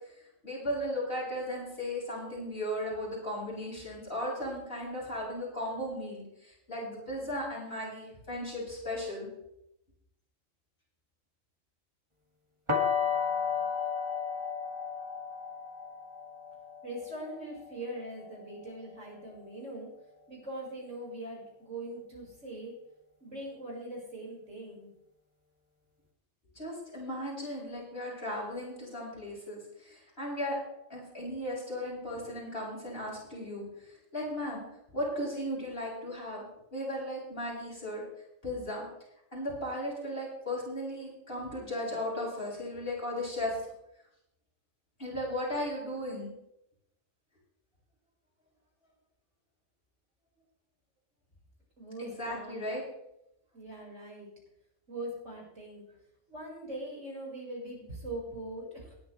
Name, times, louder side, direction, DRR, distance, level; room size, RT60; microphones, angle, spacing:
voice 1, 0.4-9.3 26.6-30.6 30.9-34.6 34.9-36.4 36.7-38.0 38.4-38.8 39.3-43.6 45.0-46.3 52.0-52.8, left 1 dB, 45° left, -5 dB, 7.1 m, -36 dB
sound 1, 12.7-18.5, left 6 dB, 25° right, 2.2 m, -33 dB
voice 2, 16.8-19.9 20.3-22.7 23.2-24.9 51.8-52.6 53.5-54.3 54.9-55.9 56.3-58.9, right 1 dB, 70° right, -3 dB, 5.9 m, -41 dB
19.5 x 11.0 x 3.3 m, 0.81 s
omnidirectional pair, 1.3 m